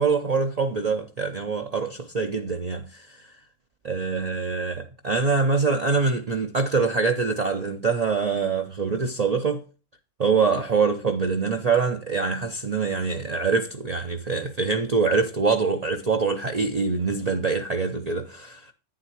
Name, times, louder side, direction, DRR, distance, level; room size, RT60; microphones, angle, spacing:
voice 1, 0.0-3.1 3.8-9.6 10.2-18.7, right 4 dB, 40° right, 0.6 m, -24 dB
9.2 x 7.6 x 2.9 m
omnidirectional pair, 1.3 m